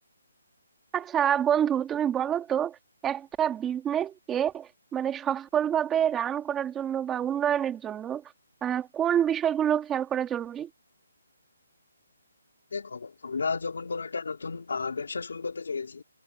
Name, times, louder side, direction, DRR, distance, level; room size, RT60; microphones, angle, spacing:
voice 1, 0.9-2.8 3.0-8.2 8.6-10.7, right 9 dB, 10° right, 2.3 m, -27 dB
voice 2, 12.7-16.0, left 4 dB, 75° left, 2.6 m, -33 dB
hypercardioid pair, 160°, 0 cm